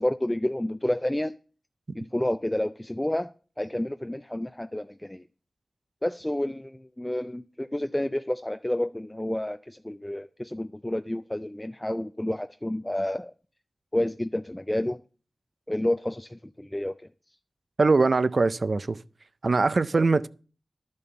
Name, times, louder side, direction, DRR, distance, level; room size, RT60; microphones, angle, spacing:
voice 1, 0.0-1.4 1.9-3.3 3.6-5.2 6.0-13.3 13.9-15.0 15.7-17.0 19.9-20.1, left 1 dB, 15° left, 0.4 m, -30 dB
voice 2, 17.8-19.0 19.4-20.3, right 3 dB, 55° right, 0.5 m, -22 dB
11.5 x 5.4 x 6.8 m
wide cardioid pair, 70°, 0 cm